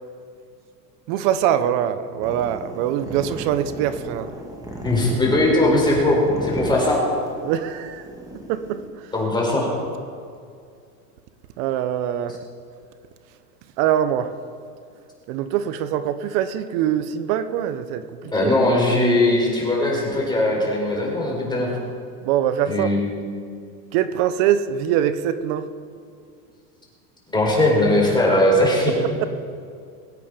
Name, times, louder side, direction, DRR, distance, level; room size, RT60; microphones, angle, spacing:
voice 1, 1.1-4.3 7.4-8.0 8.5-9.1 11.6-12.4 13.8-14.3 15.3-18.5 22.2-22.9 23.9-25.7, right 10 dB, 50° right, 12 dB, 1.0 m, -23 dB
sound 1, 2.2-8.9, equal, 5° right, 2.2 m, -35 dB
voice 2, 4.8-7.0 9.1-9.7 18.3-21.7 22.7-23.1 27.3-28.9, left 1 dB, 10° left, -2 dB, 4.8 m, -19 dB
22.5 x 9.3 x 5.2 m, 2.3 s
supercardioid pair, 130°, 49 cm